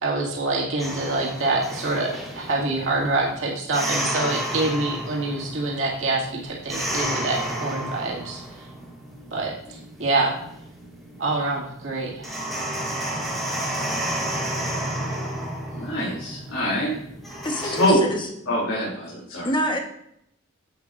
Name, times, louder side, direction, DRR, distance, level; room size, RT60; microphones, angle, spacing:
voice 1, 0.0-8.4 9.3-9.5 10.0-10.4 11.2-12.4, right 2 dB, 70° right, -3 dB, 2.1 m, -25 dB
sound 1, 0.8-17.9, right 1 dB, ahead, 1.9 m, -32 dB
voice 2, 15.7-16.9 17.6-18.0 18.5-19.5, equal, 85° left, -8 dB, 2.9 m, -24 dB
voice 3, 17.4-18.3 19.4-19.8, equal, 25° left, 3 dB, 1.1 m, -26 dB
10.0 x 8.4 x 2.5 m, 0.75 s
head